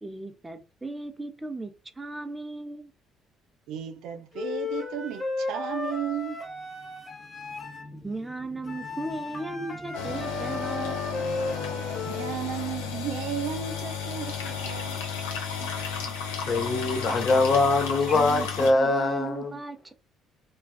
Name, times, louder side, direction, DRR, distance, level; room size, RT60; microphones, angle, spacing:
voice 1, 0.0-2.9 8.0-11.3 17.1-17.2 18.1-19.9, right 2 dB, 20° right, 0.5 m, -36 dB
voice 2, 3.7-6.4 12.0-15.0 15.4-15.5 16.1-16.2, right 9 dB, 70° right, 0.4 m, -34 dB
Wind instrument woodwind instrument, 4.3-7.9 8.6-12.4, left 3 dB, 30° left, 1.3 m, -35 dB
sound 1, 6.3-14.0, left 1 dB, 10° left, 0.8 m, -48 dB
sound 2, 9.9-18.7, left 6 dB, 85° left, 0.6 m, -33 dB
voice 3, 16.5-19.6, left 3 dB, 45° left, 0.8 m, -23 dB
2.4 x 2.3 x 2.3 m
hypercardioid pair, 55°, 0 cm